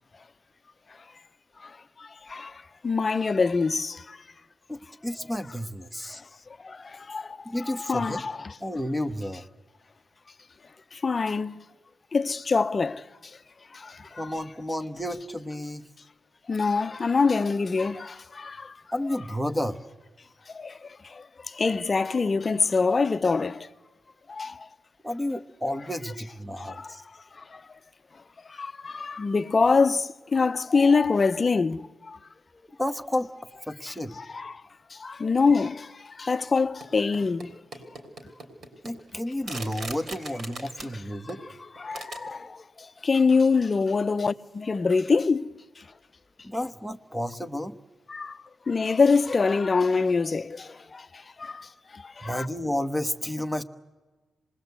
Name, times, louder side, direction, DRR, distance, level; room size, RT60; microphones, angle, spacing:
voice 1, 2.0-4.2 6.6-7.4 7.8-8.5 10.9-11.6 12.1-13.0 13.7-14.3 16.5-18.7 20.5-20.7 21.1-23.7 24.3-24.7 26.6-26.9 27.5-27.6 28.6-32.2 34.1-34.6 34.9-37.5 41.2-41.3 41.8-42.6 43.0-45.5 48.1-48.4 48.7-51.1 51.4-51.7 51.9-52.5, left 4 dB, 35° left, 0.7 m, -25 dB
voice 2, 4.7-6.2 7.4-8.2 8.6-9.5 14.1-15.8 18.9-19.8 25.0-27.0 32.8-33.3 33.7-34.1 38.8-41.4 46.4-47.8 52.2-53.6, left 1 dB, ahead, 1.0 m, -31 dB
sound 1, 36.8-37.5 37.7-41.0 41.3-41.5 41.8-42.3, right 3 dB, 60° right, 3.5 m, -39 dB
27.0 x 20.5 x 8.1 m
cardioid pair, 120°, 0 cm